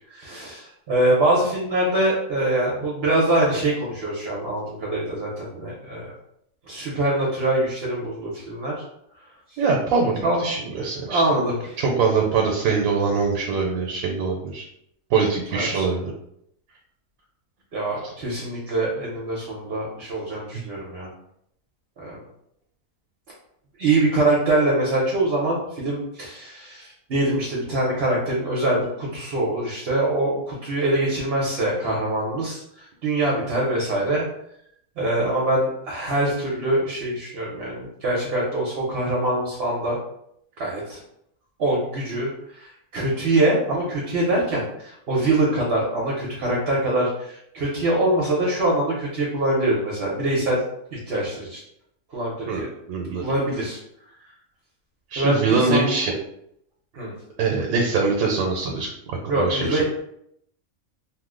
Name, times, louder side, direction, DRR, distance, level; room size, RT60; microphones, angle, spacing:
voice 1, 0.1-6.1 6.7-8.7 10.2-10.5 11.1-11.6 15.5-15.9 17.7-21.1 22.0-22.2 23.8-34.2 35.0-40.0 40.6-41.0 41.6-42.3 42.6-42.7 42.9-50.6 50.9-51.6 52.1-52.7 53.2-53.8 55.2-55.9 56.9-57.1 59.3-59.8, right 1 dB, 55° right, -4 dB, 0.9 m, -24 dB
voice 2, 9.6-11.2 11.8-14.6 15.1-16.1 20.5-20.7 52.5-53.2 55.1-56.1 57.4-58.9 59.4-59.8, right 4 dB, 90° right, 1 dB, 1.0 m, -23 dB
2.7 x 2.0 x 3.6 m, 0.74 s
omnidirectional pair, 1.4 m